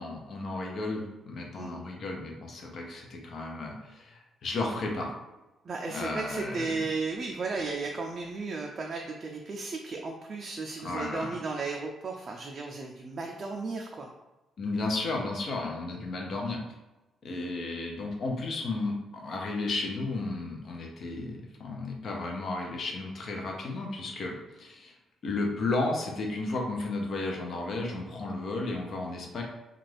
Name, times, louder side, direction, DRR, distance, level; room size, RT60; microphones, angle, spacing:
voice 1, 0.0-5.1 5.9-6.9 10.8-11.4 14.6-16.6 17.2-24.9 25.2-29.4, left 2 dB, 55° left, 1 dB, 0.6 m, -33 dB
voice 2, 5.7-14.1, right 3 dB, 45° right, 1 dB, 0.3 m, -35 dB
2.5 x 2.3 x 3.2 m, 1.0 s
cardioid pair, 90°, 0 cm